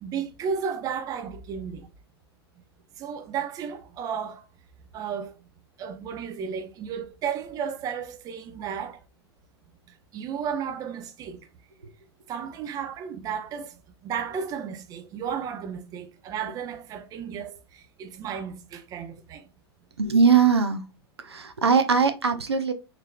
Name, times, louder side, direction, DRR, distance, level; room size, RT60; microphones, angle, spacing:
voice 1, 0.0-1.9 3.0-4.4 4.9-5.3 5.8-9.0 10.1-11.4 12.3-13.7 14.0-19.5, right 7 dB, 25° right, 0.6 m, -33 dB
voice 2, 20.0-20.8 21.2-22.7, right 5 dB, 80° right, 0.6 m, -21 dB
3.8 x 3.1 x 2.3 m
figure-of-eight pair, 95°, 14 cm